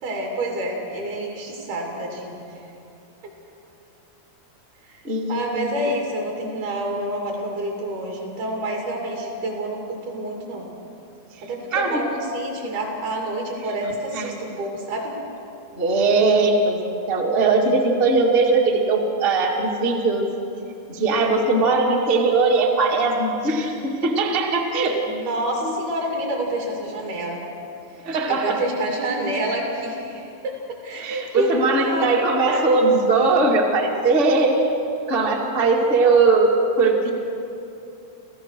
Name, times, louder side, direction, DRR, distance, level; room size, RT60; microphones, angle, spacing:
voice 1, 0.0-2.6 3.2-3.3 4.8-5.0 5.3-10.7 11.4-15.2 25.1-27.4 28.0-32.1, right 1 dB, 65° right, 0 dB, 4.5 m, -28 dB
voice 2, 5.0-5.7 11.7-12.0 14.1-14.4 15.7-20.3 20.9-25.0 28.0-28.6 31.0-34.7 35.1-37.1, right 3 dB, 30° right, 0 dB, 0.9 m, -20 dB
28.0 x 15.5 x 6.6 m, 2.8 s
omnidirectional pair, 4.8 m